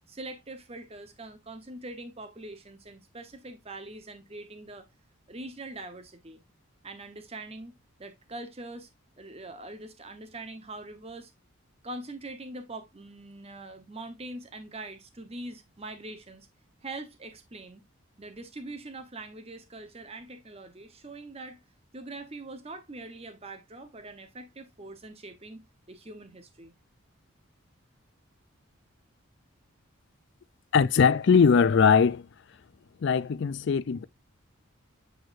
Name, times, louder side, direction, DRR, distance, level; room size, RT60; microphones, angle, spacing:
voice 1, 0.1-4.9 5.3-6.4 6.8-7.7 8.0-8.9 9.2-11.3 11.8-16.5 16.8-17.8 18.2-21.6 21.9-26.7, right 2 dB, 25° right, 0.9 m, -43 dB
voice 2, 30.7-32.3 33.0-34.0, left 6 dB, 55° left, 0.4 m, -21 dB
8.0 x 4.6 x 2.5 m
head